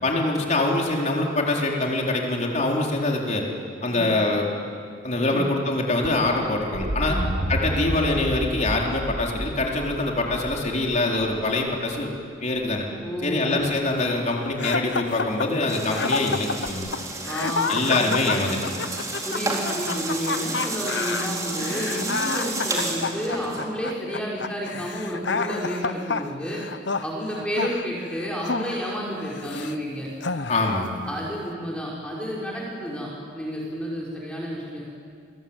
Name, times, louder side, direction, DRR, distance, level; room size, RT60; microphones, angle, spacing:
voice 1, 0.0-3.4 3.8-4.5 5.0-7.2 7.5-12.1 12.4-12.8 13.2-16.9 17.7-18.7 30.5-31.0, left 2 dB, 40° left, -1 dB, 4.2 m, -24 dB
sound 1, 6.0-12.0 13.6-14.1 16.7-16.8, right 1 dB, 75° right, 4.1 m, -31 dB
voice 2, 13.0-13.6 17.2-18.1 19.2-26.6 27.0-30.1 31.0-34.8, equal, 5° left, -4 dB, 5.2 m, -31 dB
sound 2, 14.6-29.8 30.2-30.9, left 4 dB, 70° left, 0.9 m, -30 dB
sound 3, 15.7-23.7, right 2 dB, 20° right, 4.1 m, -31 dB
29.5 x 22.0 x 9.0 m, 2.2 s
head